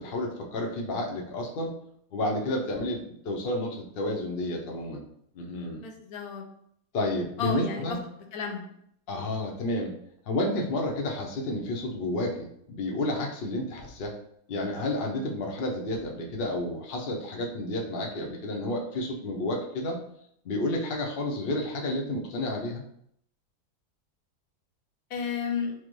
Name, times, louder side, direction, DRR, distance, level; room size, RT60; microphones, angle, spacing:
voice 1, 0.0-1.7 2.1-5.0 5.3-5.8 6.9-8.0 9.1-10.0 10.3-14.1 14.5-20.0 20.4-22.8, left 1 dB, 60° left, 1 dB, 0.6 m, -31 dB
voice 2, 5.7-6.4 7.4-8.0 8.3-8.8 25.1-25.7, left 5 dB, 75° left, 4 dB, 1.1 m, -32 dB
4.6 x 2.1 x 3.1 m, 0.70 s
omnidirectional pair, 1.6 m